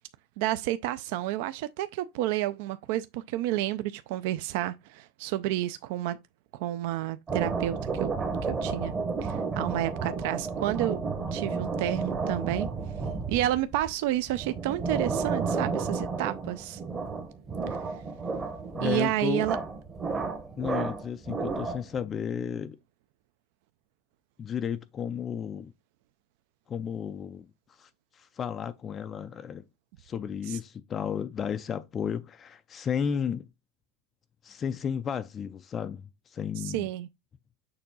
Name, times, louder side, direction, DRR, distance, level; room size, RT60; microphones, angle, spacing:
voice 1, 0.4-6.2 6.5-8.1 8.4-8.9 9.2-11.0 11.3-12.7 13.3-16.8 18.8-19.6 30.5-30.6 36.6-37.1, right 14 dB, 55° right, 0.4 m, -30 dB
sound 1, 7.3-22.0, right 4 dB, 20° right, 0.9 m, -32 dB
voice 2, 18.7-19.5 20.6-22.8 24.4-25.7 26.7-29.6 30.0-33.5 34.4-36.9, left 7 dB, 20° left, 0.3 m, -33 dB
6.7 x 2.6 x 5.4 m
supercardioid pair, 165°, 0 cm